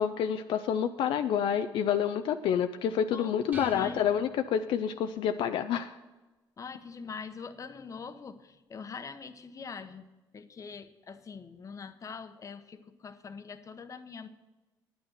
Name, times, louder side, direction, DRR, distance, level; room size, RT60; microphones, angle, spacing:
voice 1, 0.0-5.9, left 8 dB, 75° left, 8 dB, 0.5 m, -28 dB
sound 1, 3.5-5.1, right 2 dB, 20° right, 1.4 m, -47 dB
voice 2, 3.7-4.0 6.6-10.1 10.3-14.3, left 5 dB, 40° left, 10 dB, 0.9 m, -43 dB
9.2 x 9.1 x 6.5 m, 1.1 s
cardioid pair, 85°, 9 cm